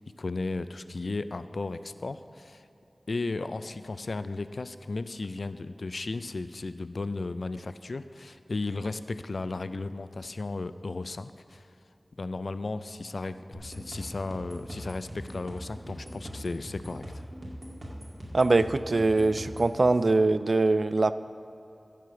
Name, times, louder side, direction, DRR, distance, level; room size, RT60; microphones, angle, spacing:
voice 1, 0.2-2.7 3.1-11.7 12.2-17.2, left 3 dB, 70° left, 12 dB, 0.3 m, -35 dB
sound 1, 13.5-19.7, equal, 35° right, 2.2 m, -41 dB
voice 2, 18.3-21.1, right 3 dB, 60° right, 14 dB, 0.3 m, -23 dB
14.0 x 4.9 x 6.9 m, 2.9 s
wide cardioid pair, 70°, 0 cm